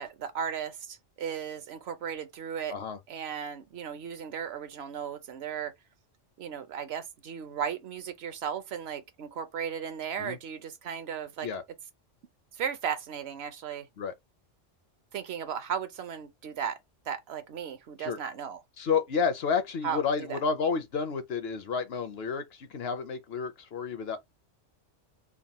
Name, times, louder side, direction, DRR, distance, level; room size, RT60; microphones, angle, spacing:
voice 1, 0.0-2.8 3.1-5.7 6.4-11.5 12.5-13.9 15.1-16.8 17.1-18.6 19.8-20.4, right 7 dB, 65° right, 0.8 m, -36 dB
voice 2, 18.8-24.2, left 5 dB, 60° left, 0.8 m, -30 dB
3.5 x 2.1 x 4.0 m
omnidirectional pair, 1.3 m